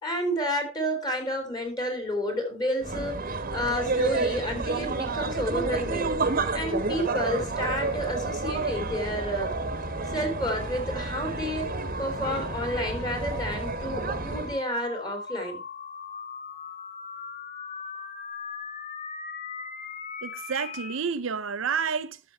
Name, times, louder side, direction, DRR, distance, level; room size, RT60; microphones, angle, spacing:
voice 1, 0.0-6.1 6.5-9.6 10.1-15.6, equal, 20° left, 3.2 m, -30 dB
sound 1, 2.1-21.0, left 4 dB, 40° left, 1.3 m, -42 dB
sound 2, 2.8-14.6, right 3 dB, 45° right, 1.2 m, -30 dB
voice 2, 20.2-22.2, right 6 dB, 70° right, 0.7 m, -29 dB
12.5 x 6.9 x 4.4 m
head